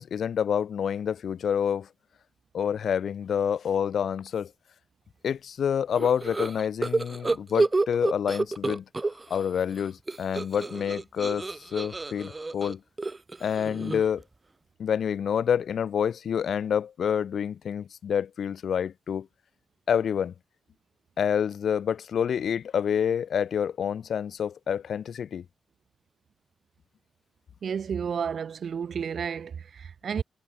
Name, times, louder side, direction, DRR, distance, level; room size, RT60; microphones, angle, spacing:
voice 1, 0.0-1.9 2.5-4.5 5.2-8.8 9.3-11.5 11.7-12.8 13.4-14.2 14.8-19.3 19.9-20.3 21.2-25.4, left 8 dB, 75° left, 2.0 m, -27 dB
sound 1, 6.0-9.4 9.7-14.2, right 3 dB, 25° right, 3.4 m, -29 dB
voice 2, 27.6-30.2, right 7 dB, 65° right, 3.2 m, -31 dB
cardioid pair, 90°, 0 cm